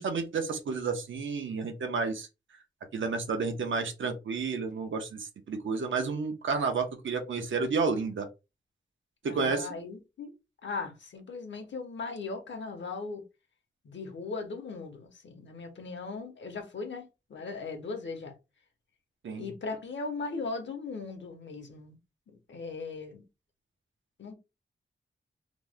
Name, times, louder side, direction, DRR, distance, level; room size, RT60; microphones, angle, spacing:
voice 1, 0.0-2.3 2.9-8.3 9.2-9.7 19.2-19.5, right 4 dB, 90° right, 0.7 m, -31 dB
voice 2, 9.2-10.3 10.6-13.2 13.8-18.3 19.4-22.0 22.3-23.2 24.2-24.3, left 4 dB, 75° left, 0.9 m, -38 dB
2.9 x 2.1 x 3.5 m
wide cardioid pair, 175°, 19 cm